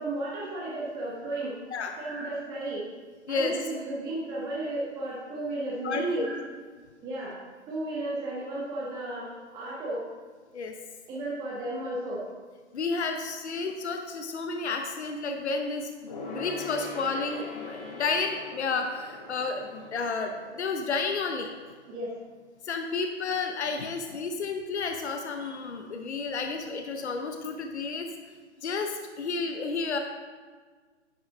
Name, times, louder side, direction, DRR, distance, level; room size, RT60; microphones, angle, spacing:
voice 1, 0.0-1.5 2.0-2.9 3.3-6.4 7.0-7.4 7.7-10.0 11.1-12.2 21.9-22.1, right 2 dB, 10° right, -4 dB, 0.7 m, -33 dB
voice 2, 5.8-6.3 10.5-10.7 12.7-21.5 22.6-28.1 28.6-30.0, left 4 dB, 70° left, 5 dB, 0.8 m, -31 dB
Gong, 16.1-22.0 22.2-22.3, left 2 dB, 35° left, 2.1 m, -42 dB
10.5 x 5.6 x 3.4 m, 1.5 s
figure-of-eight pair, 130°, 35 cm